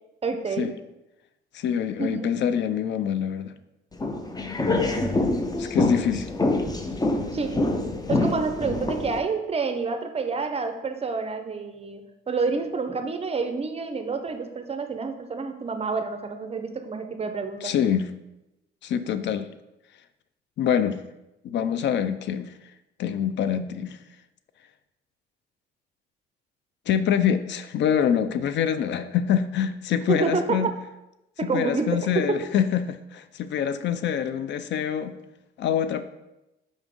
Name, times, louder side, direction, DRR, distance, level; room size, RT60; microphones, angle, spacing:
voice 1, 0.2-0.7 2.0-2.3 7.3-7.6 8.1-17.7 30.1-30.7 31.4-32.4, right 4 dB, 30° right, 7 dB, 0.7 m, -28 dB
voice 2, 1.5-3.5 5.6-6.3 17.6-18.1 18.8-19.5 20.6-21.0 21.4-22.5 23.0-24.0 26.9-30.7 31.4-35.2 35.6-36.0, left 8 dB, 65° left, 12 dB, 0.4 m, -25 dB
sound 1, 3.9-9.2, left 2 dB, 20° left, 0.6 m, -26 dB
5.1 x 3.6 x 5.2 m, 0.95 s
cardioid pair, 90°, 20 cm